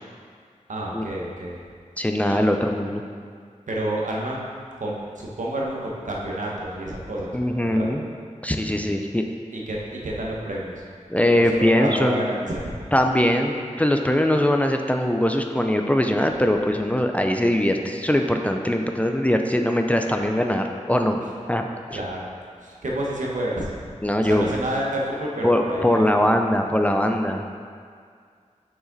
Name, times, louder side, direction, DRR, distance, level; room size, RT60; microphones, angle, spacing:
voice 1, 0.7-1.6 2.3-2.4 3.7-4.4 4.8-7.9 9.5-10.8 11.4-12.8 21.9-22.3 22.6-23.7 24.2-26.3, right 1 dB, 80° right, -3 dB, 1.1 m, -29 dB
voice 2, 2.0-3.0 7.3-8.0 8.4-9.2 11.1-12.3 12.9-21.2 21.5-22.0 24.0-24.5 25.4-27.4, left 1 dB, 10° left, 3 dB, 0.4 m, -21 dB
6.2 x 4.9 x 4.0 m, 2.1 s
wide cardioid pair, 90°, 13 cm